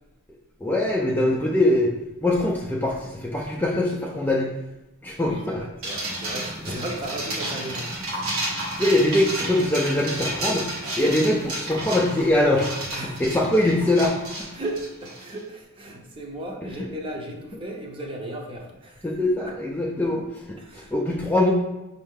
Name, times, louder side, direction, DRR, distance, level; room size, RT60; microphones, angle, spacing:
voice 1, 0.6-1.9 2.2-4.5 5.0-5.6 8.8-10.7 11.0-12.7 13.2-14.5 16.8-16.9 19.0-21.5, left 1 dB, 10° left, -2 dB, 0.3 m, -22 dB
voice 2, 5.3-8.3 12.9-13.2 14.5-19.1 19.4-19.5 20.6-20.9, right 1 dB, 25° right, 0 dB, 0.7 m, -35 dB
sound 1, 5.8-15.4, right 1 dB, 75° right, 1.2 m, -31 dB
5.4 x 2.7 x 3.6 m, 0.98 s
head